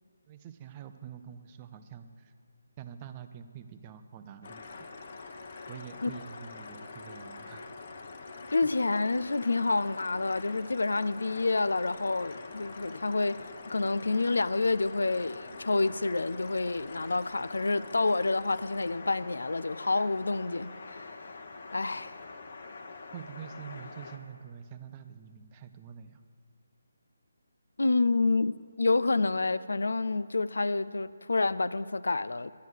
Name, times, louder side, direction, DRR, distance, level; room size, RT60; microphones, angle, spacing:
voice 1, 0.3-2.3 2.8-4.9 5.7-7.6 7.9-8.0 8.6-8.7 23.1-26.2, right 8 dB, 25° right, 0.5 m, -46 dB
sound 1, 4.4-24.2, left 3 dB, 50° left, 1.0 m, -45 dB
sound 2, 4.4-18.9, left 4 dB, 35° left, 0.7 m, -53 dB
voice 2, 8.5-21.1 21.7-22.2 27.8-32.5, left 3 dB, 70° left, 0.3 m, -28 dB
12.0 x 9.3 x 6.3 m
figure-of-eight pair, 150°, 0 cm